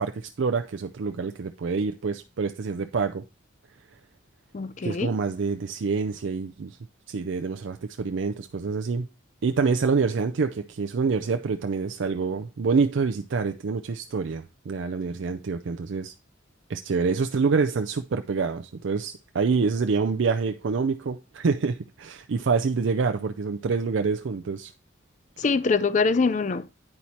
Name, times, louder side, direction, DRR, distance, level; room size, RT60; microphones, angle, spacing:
voice 1, 0.0-3.2 4.8-6.8 7.1-9.1 9.4-16.1 16.7-24.7, right 5 dB, 70° right, 0.4 m, -26 dB
voice 2, 4.5-5.2 25.4-26.7, left 4 dB, 35° left, 0.4 m, -24 dB
9.8 x 4.4 x 4.2 m
head